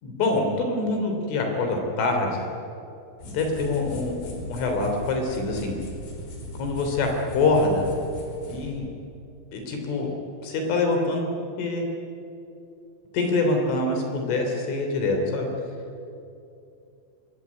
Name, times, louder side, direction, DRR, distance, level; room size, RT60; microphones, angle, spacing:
voice 1, 0.0-2.5 3.3-5.7 6.6-7.9 8.5-8.8 9.5-10.1 10.4-11.9 13.1-15.5, left 2 dB, 75° left, 3 dB, 5.8 m, -25 dB
sound 1, 3.2-8.7, left 1 dB, 50° left, 6.3 m, -39 dB
24.5 x 23.0 x 9.8 m, 2.6 s
omnidirectional pair, 5.6 m